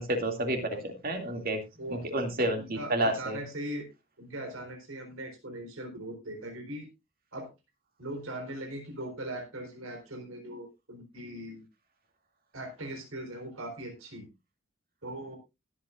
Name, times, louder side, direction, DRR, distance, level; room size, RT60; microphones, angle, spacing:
voice 1, 0.0-1.6 1.9-3.4, right 1 dB, 45° right, 5 dB, 2.5 m, -30 dB
voice 2, 2.5-3.9 4.2-6.9 7.3-7.5 8.0-11.6 12.5-14.3 15.0-15.4, right 1 dB, 80° right, 2 dB, 4.1 m, -40 dB
20.5 x 8.5 x 2.5 m, 0.24 s
head